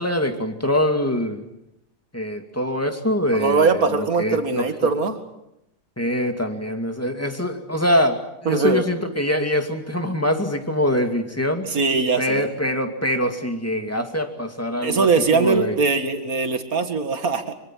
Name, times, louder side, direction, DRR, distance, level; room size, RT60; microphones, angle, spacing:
voice 1, 0.0-1.4 2.1-4.9 6.0-11.7 12.2-15.8, left 1 dB, 10° left, 5 dB, 2.3 m, -24 dB
voice 2, 3.3-5.2 8.5-8.8 11.7-12.5 14.8-17.5, right 4 dB, 60° right, 8 dB, 2.5 m, -21 dB
25.0 x 24.0 x 7.6 m, 0.84 s
omnidirectional pair, 1.7 m